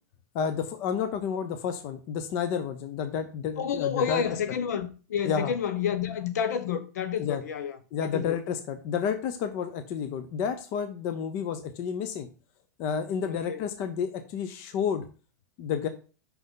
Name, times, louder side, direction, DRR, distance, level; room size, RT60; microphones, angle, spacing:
voice 1, 0.3-4.2 5.2-5.5 7.2-7.4 7.9-12.3 12.8-15.0 15.6-15.9, left 7 dB, 25° left, 0.5 m, -30 dB
voice 2, 3.6-7.8 8.0-8.4 13.3-13.6, left 7 dB, 70° left, 1.0 m, -30 dB
5.8 x 5.3 x 3.8 m
supercardioid pair, 180°, 9 cm